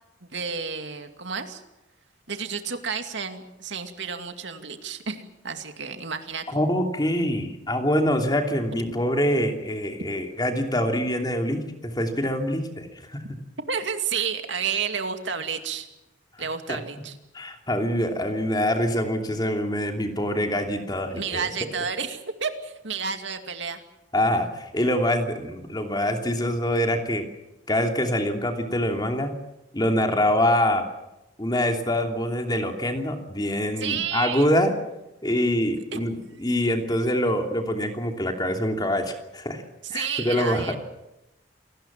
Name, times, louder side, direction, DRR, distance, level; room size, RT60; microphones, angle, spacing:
voice 1, 0.3-1.6 2.3-6.5 13.7-15.9 16.4-17.2 21.1-23.8 33.8-34.5 35.9-36.0 39.8-40.8, right 6 dB, 75° right, 6 dB, 2.4 m, -31 dB
voice 2, 6.5-13.2 16.4-16.8 17.3-21.4 24.1-27.3 27.7-29.3 29.7-30.8 31.4-34.7 35.2-39.6 39.9-40.8, left 1 dB, 20° left, 4 dB, 2.9 m, -25 dB
28.0 x 19.5 x 7.5 m, 0.94 s
head